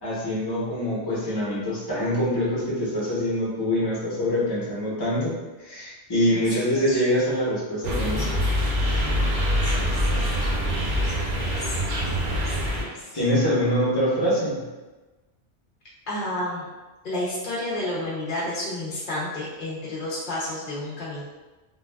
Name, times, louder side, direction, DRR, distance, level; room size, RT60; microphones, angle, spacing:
voice 1, 0.0-5.3 5.6-8.3 13.1-14.6, equal, 25° left, -8 dB, 0.8 m, -24 dB
voice 2, 6.3-6.8 9.6-10.6 11.0-11.7 12.2-13.1 16.1-16.7 17.0-21.2, left 1 dB, 55° left, -6 dB, 0.7 m, -32 dB
sound 1, 7.8-12.8, equal, 55° right, 0.7 m, -24 dB
3.1 x 2.3 x 2.2 m, 1.2 s
omnidirectional pair, 1.1 m